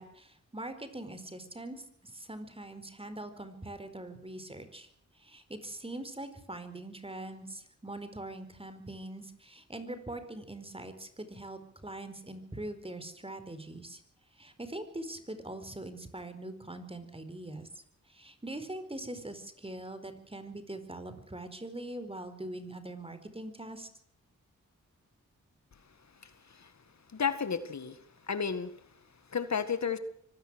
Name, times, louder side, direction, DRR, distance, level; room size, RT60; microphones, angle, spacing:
voice 1, 0.0-4.9 5.2-14.0 14.4-23.9, right 1 dB, 20° right, 10 dB, 4.5 m, -42 dB
voice 2, 27.1-28.0 28.3-28.7 29.3-30.0, left 6 dB, 60° left, 11 dB, 2.0 m, -32 dB
24.5 x 17.5 x 6.4 m, 0.65 s
wide cardioid pair, 80°, 31 cm